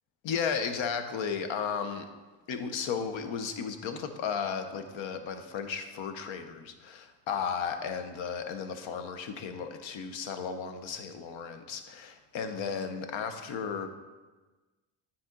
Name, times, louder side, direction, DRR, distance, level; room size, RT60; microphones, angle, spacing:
voice 1, 0.2-2.1 2.5-13.9, left 6 dB, 70° left, 8 dB, 0.9 m, -34 dB
9.2 x 4.2 x 3.8 m, 1.2 s
cardioid pair, 110°, 47 cm